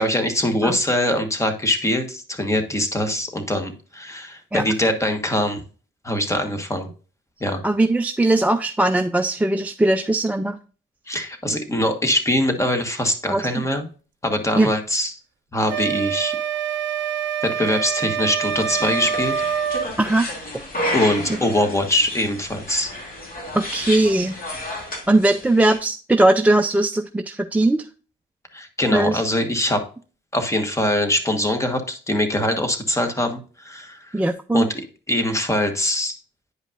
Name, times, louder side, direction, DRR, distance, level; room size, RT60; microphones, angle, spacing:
voice 1, 0.0-5.6 6.0-6.9 7.4-7.6 11.1-13.9 14.2-15.1 15.5-16.4 17.4-19.4 20.9-22.9 28.5-29.9 30.3-34.1 34.5-36.2, left 1 dB, 15° left, 7 dB, 1.2 m, -23 dB
voice 2, 7.6-10.6 13.3-13.4 14.6-14.7 20.0-20.3 23.5-24.4 25.1-27.8 28.9-29.2 34.1-34.7, right 2 dB, 5° right, 5 dB, 0.4 m, -19 dB
sound 1, 15.7-19.9, right 8 dB, 65° right, 0.6 m, -25 dB
sound 2, 18.4-25.8, left 1 dB, 45° left, 2.5 m, -31 dB
9.6 x 5.1 x 2.5 m, 0.37 s
cardioid pair, 90°, 20 cm